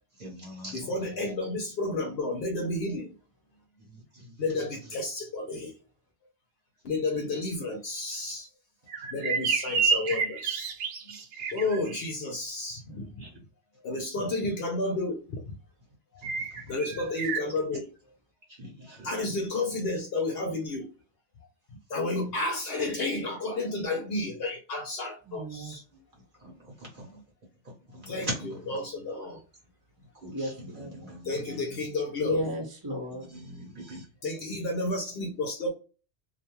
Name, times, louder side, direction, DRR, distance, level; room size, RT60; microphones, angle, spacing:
voice 1, 0.2-0.9 13.2-13.3 18.6-19.1 26.4-26.5 27.0-27.1 27.9-28.3 30.2-31.3 33.3-34.0, equal, 50° right, 1.0 m, -40 dB
voice 2, 0.7-3.1 4.4-5.7 6.8-8.5 9.1-10.7 11.0-11.2 11.5-13.3 13.8-15.5 16.7-17.9 19.0-20.8 21.9-25.8 27.1-27.2 28.1-29.4 31.2-32.6 34.2-35.7, left 2 dB, 65° left, 0.8 m, -31 dB
sound 1, 8.9-12.0 16.2-17.4, right 5 dB, 85° right, 0.9 m, -30 dB
voice 3, 25.3-25.7 30.3-31.1 32.2-33.3, equal, 20° right, 0.8 m, -34 dB
2.5 x 2.2 x 2.9 m
omnidirectional pair, 1.2 m